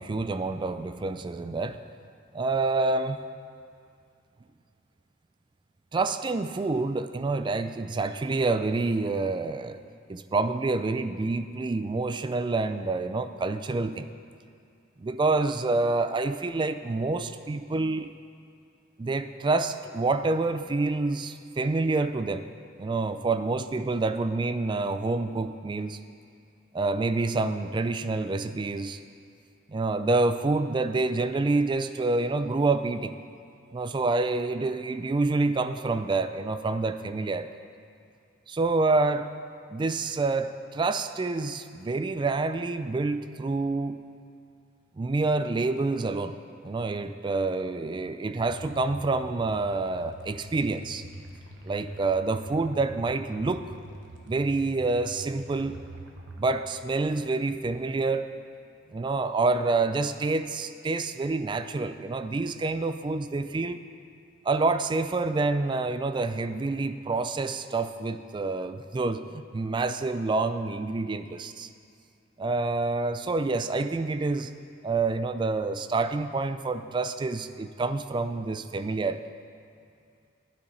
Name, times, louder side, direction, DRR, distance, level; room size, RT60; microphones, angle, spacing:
voice 1, 0.0-1.8 2.3-3.2 5.9-9.8 10.1-14.1 15.0-18.1 19.0-22.5 22.8-26.0 26.7-29.0 29.7-33.2 33.7-37.5 38.5-39.3 39.7-44.0 45.0-46.4 46.6-51.0 51.6-53.7 54.3-55.8 56.4-58.3 58.9-63.8 64.5-71.7 72.4-74.5 74.8-79.2, right 3 dB, 25° right, 11 dB, 0.3 m, -27 dB
sound 1, 48.4-56.4, right 1 dB, 80° right, 1.2 m, -44 dB
12.0 x 9.7 x 4.2 m, 2.4 s
head